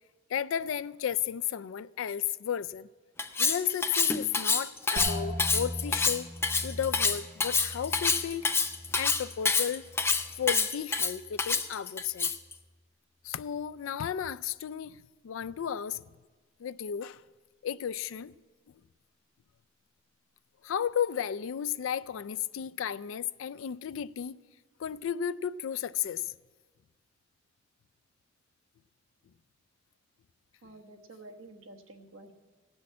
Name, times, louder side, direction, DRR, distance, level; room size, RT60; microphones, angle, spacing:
voice 1, 0.3-2.9 3.4-6.3 6.6-8.5 8.9-9.8 10.4-12.3 13.2-15.0 15.2-16.0 16.6-17.2 17.6-18.3 20.6-24.4 24.8-26.3, left 9 dB, 75° left, 0.4 m, -33 dB
Cutlery silverware, 3.2-12.5, left 4 dB, 10° left, 0.4 m, -27 dB
sound 1, 5.0-10.6 10.9-11.6 12.2-12.6, equal, 35° right, 1.1 m, -41 dB
voice 2, 30.6-32.3, right 2 dB, 90° right, 1.3 m, -50 dB
16.5 x 6.3 x 8.5 m
head